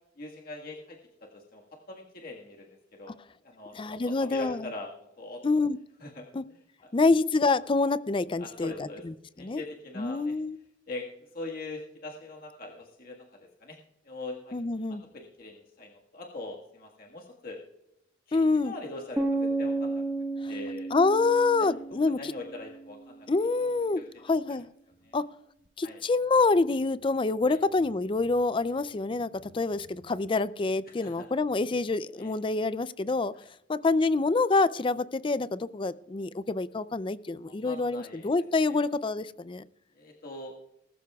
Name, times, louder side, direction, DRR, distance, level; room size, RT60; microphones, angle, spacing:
voice 1, 0.2-3.1 3.4-5.4 6.0-6.2 6.8-7.1 8.4-9.1 9.4-10.3 10.9-13.8 14.0-14.6 14.9-17.6 18.3-20.0 20.5-20.9 21.6-23.3 23.9-24.1 24.5-24.6 25.0-25.2 25.8-26.0 27.5-27.6 30.9-31.3 32.2-32.3 33.3-33.5 37.4-38.3 38.7-38.8 39.9-40.5, left 2 dB, 50° left, -1 dB, 1.6 m, -42 dB
voice 2, 3.7-4.6 5.4-5.8 6.3-6.4 6.9-9.1 9.4-9.6 10.0-10.6 14.5-15.0 18.3-18.7 20.9-22.3 23.3-24.0 24.3-24.7 25.1-25.2 25.8-33.3 33.7-39.6, left 3 dB, 25° left, 16 dB, 0.4 m, -26 dB
sound 1, 19.2-23.1, right 2 dB, 10° right, 1.5 m, -32 dB
19.5 x 13.0 x 2.3 m, 0.85 s
head